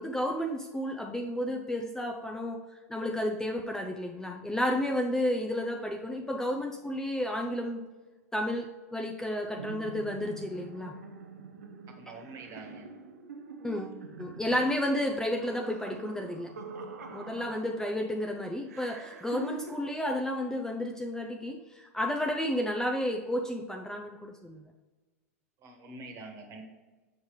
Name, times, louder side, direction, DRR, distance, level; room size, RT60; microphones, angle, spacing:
voice 1, 0.0-2.6 2.9-7.8 8.3-10.9 13.6-16.5 17.1-24.7, left 1 dB, 5° left, 2 dB, 0.6 m, -32 dB
sound 1, 9.6-18.1 18.7-19.8, right 5 dB, 85° right, 0.8 m, -45 dB
voice 2, 11.9-12.9 25.6-26.6, right 3 dB, 40° right, 4 dB, 1.5 m, -45 dB
7.3 x 5.5 x 3.2 m, 1.3 s
hypercardioid pair, 105°, 8 cm